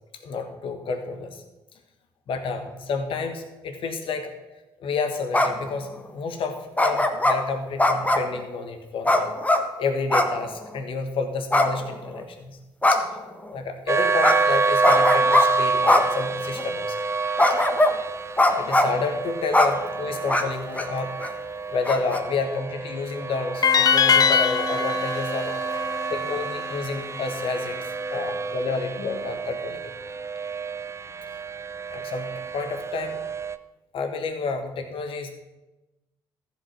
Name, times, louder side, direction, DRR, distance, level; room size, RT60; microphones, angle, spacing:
voice 1, 0.2-1.4 2.3-4.3 4.8-5.9 6.1-9.3 9.8-12.6 12.9-13.0 13.5-17.0 18.6-21.2 21.7-25.8 26.1-27.8 28.1-29.9 31.9-33.2 33.9-35.3, left 4 dB, 60° left, 7 dB, 1.5 m, -30 dB
sound 1, 5.3-5.7 6.8-7.4 7.8-8.3 9.0-9.6 10.1-10.4 10.6-10.7 11.5-12.2 12.8-13.2 14.2-14.4 14.8-15.4 15.9-16.0 16.6-16.7 17.4-18.0 18.4-19.0 19.5-19.7 20.3-20.4 20.8-20.9 21.2-21.3 21.9-22.2, left 1 dB, 15° left, 1.3 m, -20 dB
sound 2, 13.9-33.6, right 4 dB, 25° right, 0.6 m, -28 dB
sound 3, 23.6-26.8, left 7 dB, 35° left, 0.6 m, -22 dB
14.0 x 5.4 x 6.0 m, 1.0 s
hypercardioid pair, 50°, 10 cm